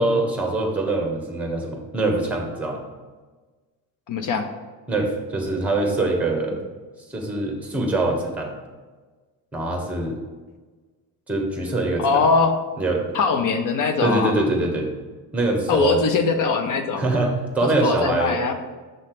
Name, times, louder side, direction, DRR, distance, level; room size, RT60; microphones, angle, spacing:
voice 1, 0.0-2.8 4.9-6.6 7.1-8.5 9.5-10.2 11.3-12.2 12.8-13.0 14.0-14.9 15.3-16.0 17.0-18.4, right 2 dB, 5° right, 1 dB, 1.0 m, -23 dB
voice 2, 4.1-4.5 12.0-12.5 13.1-14.3 15.7-17.1 17.6-18.6, left 4 dB, 50° left, 7 dB, 0.7 m, -21 dB
6.5 x 3.2 x 5.9 m, 1.3 s
cardioid pair, 150°, 39 cm